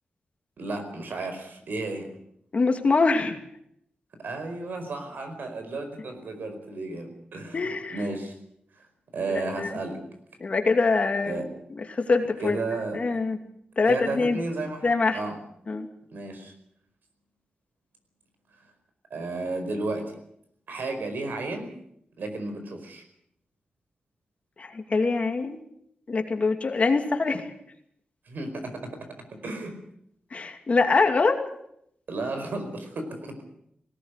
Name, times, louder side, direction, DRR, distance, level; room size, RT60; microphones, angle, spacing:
voice 1, 0.6-2.1 4.2-7.6 7.9-8.3 9.1-10.0 11.2-11.5 12.4-13.1 13.8-14.8 15.1-15.4 16.1-16.5 19.1-20.2 20.7-21.7 22.2-23.0 28.3-28.9 29.3-29.8 32.1-33.3, right 2 dB, 80° right, 6 dB, 4.9 m, -33 dB
voice 2, 2.5-3.4 7.5-8.0 9.6-9.7 10.4-11.4 11.9-12.6 12.9-13.4 13.8-14.4 14.8-15.2 15.7-15.9 24.6-25.6 26.1-27.4 30.3-31.4, left 4 dB, 45° left, 5 dB, 2.6 m, -24 dB
19.5 x 17.5 x 8.2 m, 0.72 s
wide cardioid pair, 130°, 3 cm